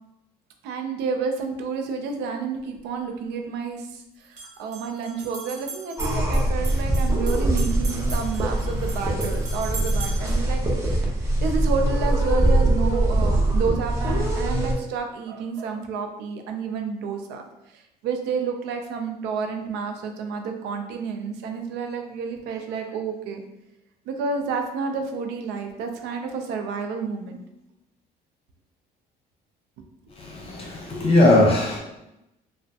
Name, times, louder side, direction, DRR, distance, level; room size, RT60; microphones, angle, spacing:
voice 1, 0.6-23.4 24.1-27.4, right 5 dB, 85° right, 4 dB, 0.5 m, -30 dB
sound 1, 2.6-2.7 4.2-10.5, right 3 dB, 45° right, 0.8 m, -39 dB
sound 2, 6.0-14.7, right 1 dB, 15° right, 0.8 m, -23 dB
voice 2, 30.2-31.8, left 2 dB, 35° left, -1 dB, 0.8 m, -19 dB
3.2 x 2.1 x 2.7 m, 0.87 s
cardioid pair, 110°, 17 cm